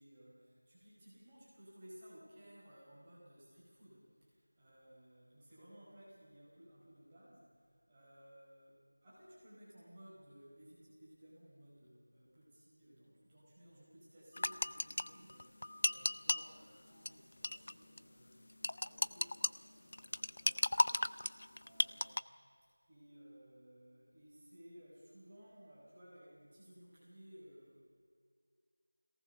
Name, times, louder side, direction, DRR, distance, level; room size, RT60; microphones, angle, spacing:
voice 1, 0.0-22.4 22.9-27.8, equal, 10° right, -10 dB, 5.0 m, -59 dB
water cups and spoons, 14.4-16.5 17.1-17.2 17.4-17.7 18.0-18.1 18.6-19.5 19.9-22.2, left 1 dB, 40° left, 0.4 m, -34 dB
22.0 x 18.5 x 6.9 m, 2.2 s
figure-of-eight pair, 175°, 0 cm